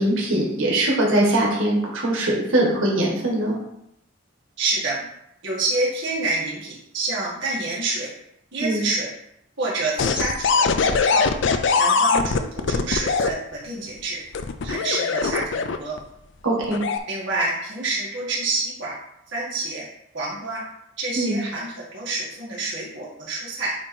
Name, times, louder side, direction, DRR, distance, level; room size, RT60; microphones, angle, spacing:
voice 1, 0.0-3.6 8.6-8.8 16.4-16.8 21.2-21.4, right 1 dB, 90° right, -3 dB, 1.7 m, -21 dB
voice 2, 4.6-5.0 5.4-8.1 8.5-9.1 9.6-11.3 11.8-14.2 14.6-16.0 17.1-18.9 19.3-19.8 20.1-20.6 21.0-23.7, right 2 dB, 65° right, -6 dB, 2.0 m, -27 dB
sound 1, 10.0-13.3 14.3-16.0 16.6-17.0, left 4 dB, 65° left, 0.5 m, -21 dB
8.4 x 3.0 x 4.4 m, 0.78 s
head